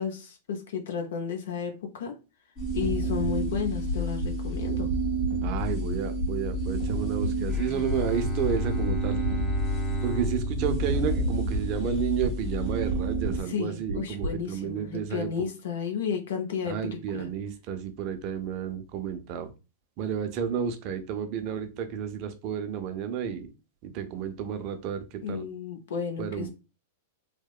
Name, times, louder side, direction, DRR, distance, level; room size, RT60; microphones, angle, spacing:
voice 1, 0.0-2.1 2.7-4.9 13.5-16.8 17.1-17.3 25.2-26.5, left 7 dB, 75° left, 0.5 m, -32 dB
sound 1, 2.6-13.4, right 1 dB, 45° left, 1.0 m, -30 dB
sound 2, 3.2-3.3 3.9-4.3 4.9-5.3 5.9-6.3 6.9-7.3 7.9-8.3 8.9-9.3 9.9-10.3 10.9-11.3 11.9-12.3 12.9-13.3 13.9-14.3, right 2 dB, 70° right, 0.8 m, -32 dB
voice 2, 5.4-9.2 10.0-15.5 16.6-19.5 20.0-23.5 23.8-25.5 26.2-26.5, right 7 dB, 50° right, 0.5 m, -31 dB
Bowed string instrument, 7.5-12.8, right 1 dB, 10° left, 0.6 m, -35 dB
2.8 x 2.0 x 2.3 m
hypercardioid pair, 110°, 0 cm